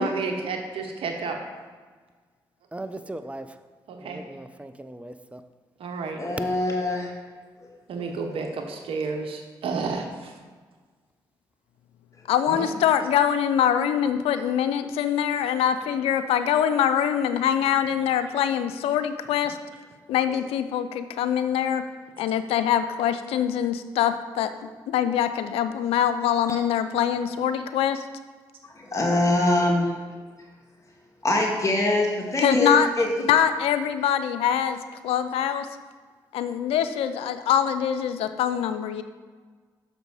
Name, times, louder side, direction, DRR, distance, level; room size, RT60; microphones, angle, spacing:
voice 1, 0.0-1.4 3.9-4.2 5.8-6.2 7.9-10.3 12.5-12.7 15.4-15.5, right 4 dB, 70° right, 3 dB, 0.9 m, -31 dB
voice 2, 2.7-3.5 4.0-5.4, right 2 dB, 15° right, 10 dB, 0.6 m, -38 dB
voice 3, 6.2-7.1 26.5-26.6 28.7-29.9 31.2-33.1, left 1 dB, 35° left, -1 dB, 1.8 m, -23 dB
voice 4, 12.3-19.6 20.1-21.8 22.2-24.5 24.9-28.0 32.4-32.9 33.2-34.8 35.0-35.7 36.3-39.0, left 9 dB, 80° left, 10 dB, 0.4 m, -24 dB
6.6 x 5.2 x 4.8 m, 1.5 s
supercardioid pair, 45°, 10 cm